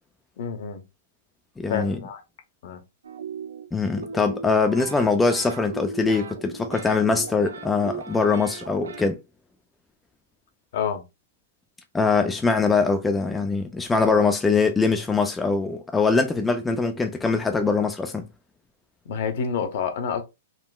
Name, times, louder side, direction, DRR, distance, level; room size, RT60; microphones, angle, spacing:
voice 1, 0.4-0.8 1.7-2.2 2.6-2.8 10.7-11.0 19.1-20.2, left 6 dB, 55° left, 0.7 m, -28 dB
voice 2, 1.6-2.0 3.7-9.2 11.9-18.3, left 4 dB, 10° left, 0.3 m, -22 dB
sound 1, 3.0-9.0, right 5 dB, 90° right, 0.5 m, -37 dB
3.7 x 2.0 x 2.3 m
hypercardioid pair, 145°, 0 cm